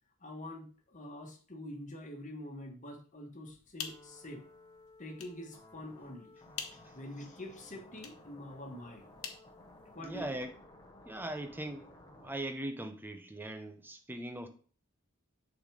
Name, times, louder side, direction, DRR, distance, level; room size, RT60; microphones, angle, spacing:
voice 1, 0.2-4.4 5.0-6.4 6.9-9.1 9.9-10.4, left 1 dB, 35° left, 2 dB, 1.5 m, -46 dB
sound 1, 3.5-10.3, left 8 dB, 75° left, 1.0 m, -49 dB
sound 2, 3.8-12.4, left 2 dB, 20° left, 1.1 m, -56 dB
voice 2, 10.0-10.5 11.0-11.9 12.2-14.5, right 1 dB, 10° right, 6 dB, 0.7 m, -40 dB
6.7 x 4.2 x 4.8 m, 0.42 s
head